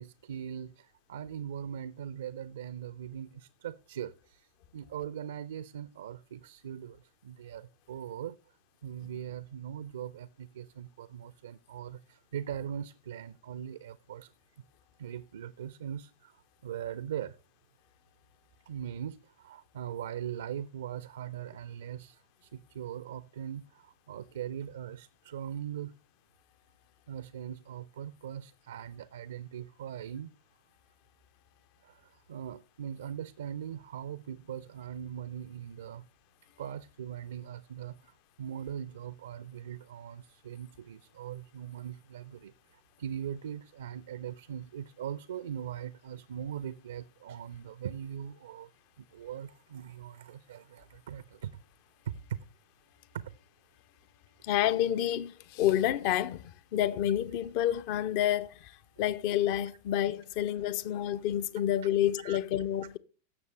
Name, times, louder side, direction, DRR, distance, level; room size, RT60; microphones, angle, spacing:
voice 1, 0.0-8.4 8.8-14.3 15.0-17.4 18.7-25.9 27.1-30.3 31.8-36.1 36.6-48.7 49.0-51.6 52.0-52.4 53.1-53.3 62.2-62.4, right 9 dB, 65° right, 0.4 m, -41 dB
voice 2, 54.4-58.7 59.0-63.0, left 11 dB, 45° left, 0.6 m, -29 dB
17.0 x 6.8 x 3.3 m
figure-of-eight pair, 90°, 0 cm